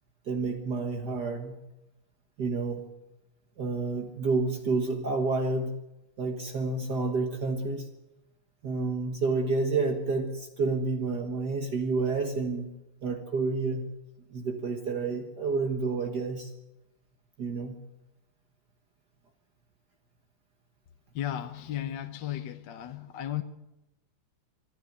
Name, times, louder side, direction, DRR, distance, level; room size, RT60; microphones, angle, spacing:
voice 1, 0.3-1.6 2.4-2.9 3.6-5.8 6.2-7.9 8.6-12.7 13.0-13.8 14.3-16.5 17.4-17.8, right 3 dB, 50° right, 5 dB, 2.0 m, -29 dB
voice 2, 21.1-23.4, left 12 dB, 60° left, 9 dB, 1.4 m, -35 dB
25.5 x 11.5 x 9.5 m, 0.95 s
omnidirectional pair, 2.4 m